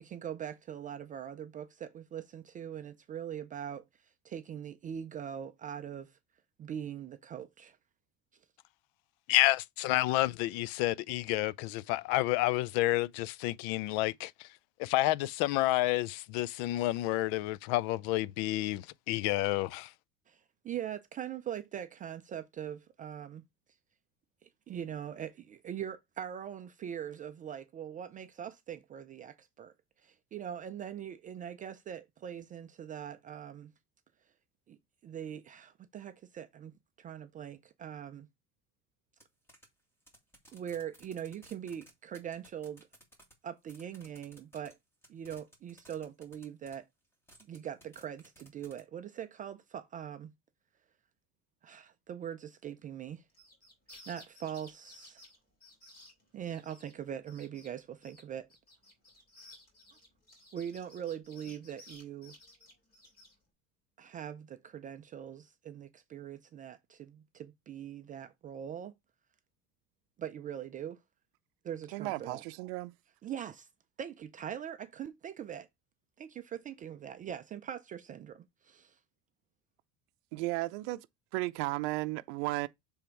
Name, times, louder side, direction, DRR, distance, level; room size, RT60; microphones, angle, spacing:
voice 1, 0.0-6.2 6.6-7.8 20.3-23.4 24.4-29.7 30.0-33.7 34.7-38.3 40.5-42.9 43.4-44.8 45.1-46.8 47.5-50.3 51.6-53.2 54.1-55.2 56.3-58.5 60.5-62.4 64.0-68.9 70.2-71.0 71.6-72.4 73.2-73.7 74.0-75.7 76.2-79.0, right 9 dB, 25° right, 0.4 m, -42 dB
voice 2, 9.3-14.3 14.8-19.9, left 17 dB, 70° left, 0.5 m, -29 dB
sound 1, 39.2-39.3 39.5-39.6 40.0-43.3 43.7-44.7 45.0-46.7 47.3-48.8, right 1 dB, 5° left, 1.9 m, -57 dB
sound 2, 53.3-56.9 57.3-57.7 58.0-63.3, left 1 dB, 30° left, 2.7 m, -56 dB
voice 3, 71.9-72.9 80.3-81.1 81.3-82.7, right 20 dB, 80° right, 0.6 m, -34 dB
6.9 x 3.5 x 4.4 m
cardioid pair, 150°, 33 cm